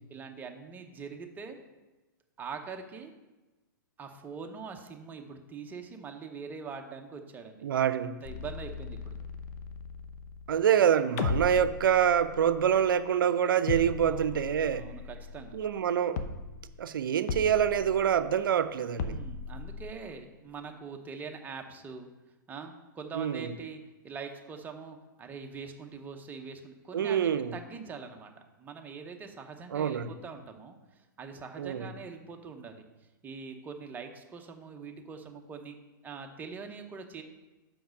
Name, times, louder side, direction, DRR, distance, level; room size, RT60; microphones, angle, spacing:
voice 1, 0.1-1.6 2.4-3.1 4.0-7.7 8.1-9.2 14.0-14.4 14.7-15.6 19.0-22.1 22.5-28.3 28.6-32.9 33.2-35.8 36.0-37.2, right 5 dB, 15° right, 4 dB, 0.8 m, -43 dB
voice 2, 7.6-8.2 10.5-14.9 15.5-16.2 16.8-19.2 23.1-23.5 26.9-27.5 29.7-30.1 31.6-31.9, right 8 dB, 75° right, 13 dB, 0.6 m, -26 dB
sound 1, 8.2-10.8 11.2-13.3 13.7-15.9 16.2-16.8 17.3-18.5 19.0-19.9, left 4 dB, 50° left, 0.8 m, -38 dB
5.8 x 5.1 x 6.4 m, 1.1 s
hypercardioid pair, 130°, 11 cm